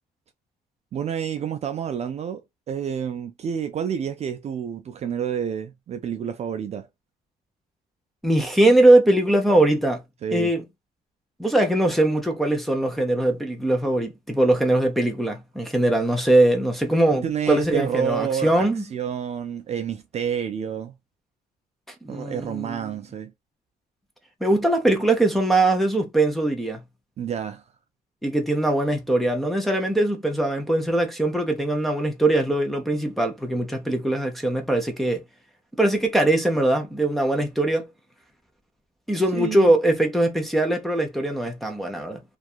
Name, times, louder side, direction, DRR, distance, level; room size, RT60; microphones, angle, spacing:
voice 1, 0.9-6.9 10.2-10.5 17.1-20.9 22.1-23.3 27.2-27.6 39.3-39.7, right 8 dB, 40° right, 0.4 m, -29 dB
voice 2, 8.2-10.0 10.3-10.6 11.4-18.8 22.0-22.9 24.4-26.8 28.2-35.2 35.8-37.9 39.1-42.2, right 1 dB, ahead, 0.6 m, -21 dB
2.7 x 2.3 x 2.4 m
cardioid pair, 135°, 17 cm